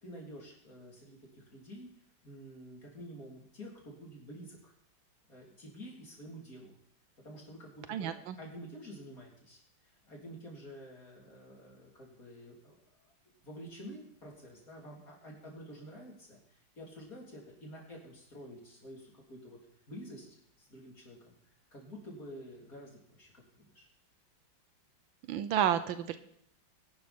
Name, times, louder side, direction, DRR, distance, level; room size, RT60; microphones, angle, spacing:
voice 1, 0.0-1.9 2.2-4.7 5.3-6.8 7.2-13.1 13.4-19.6 19.9-21.4 21.7-23.9, equal, 45° left, -2 dB, 3.9 m, -49 dB
voice 2, 7.9-8.4 25.3-26.2, right 10 dB, 85° right, 12 dB, 1.5 m, -30 dB
19.5 x 12.0 x 4.4 m, 0.71 s
omnidirectional pair, 2.1 m